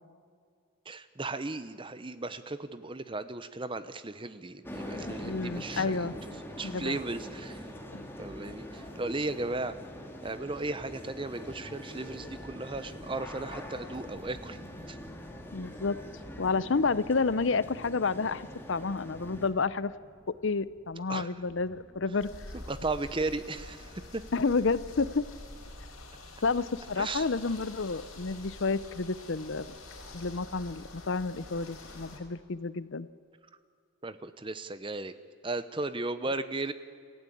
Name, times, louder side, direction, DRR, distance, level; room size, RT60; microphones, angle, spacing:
voice 1, 0.8-6.1 6.6-7.7 8.2-9.8 10.2-14.6 14.9-15.0 21.1-21.4 22.5-24.2 27.0-27.3 34.0-35.1 35.4-36.7, right 2 dB, 25° right, 13 dB, 0.8 m, -36 dB
sound 1, 4.6-19.5, equal, 10° left, 2.2 m, -43 dB
voice 2, 5.1-6.1 6.6-7.0 7.9-8.1 15.5-16.0 16.4-19.9 20.3-22.3 24.3-25.3 26.4-29.7 30.1-33.1, left 4 dB, 60° left, 17 dB, 0.6 m, -30 dB
sound 2, 12.2-25.7, equal, 30° left, 1.8 m, -54 dB
sound 3, 22.2-32.2, left 2 dB, 75° left, 4.4 m, -47 dB
27.5 x 15.0 x 8.6 m, 2.2 s
head